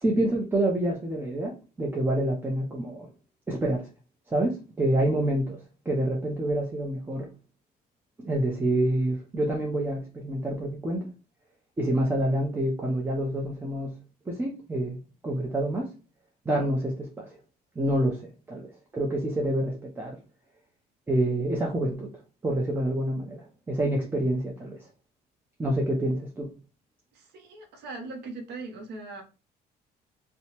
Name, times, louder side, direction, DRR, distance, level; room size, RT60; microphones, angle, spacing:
voice 1, 0.0-3.1 3.5-3.9 4.3-5.6 5.9-7.3 8.2-11.1 11.8-14.0 14.3-15.0 15.2-15.9 16.5-17.3 17.8-18.2 18.5-18.7 18.9-20.2 21.1-22.1 22.4-24.9 25.6-26.5, right 1 dB, 15° right, 0.5 m, -27 dB
voice 2, 27.1-29.2, right 3 dB, 75° right, 0.7 m, -40 dB
2.8 x 2.1 x 2.8 m
cardioid pair, 110°, 17 cm